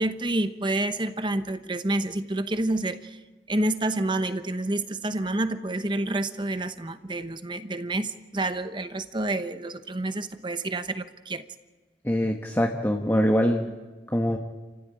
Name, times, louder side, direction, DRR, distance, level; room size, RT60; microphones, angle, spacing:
voice 1, 0.0-3.2 3.5-11.4, right 2 dB, 25° right, 10 dB, 1.0 m, -28 dB
voice 2, 12.0-13.7 14.1-14.4, equal, 15° left, 2 dB, 1.3 m, -23 dB
29.0 x 15.5 x 9.0 m, 1.3 s
head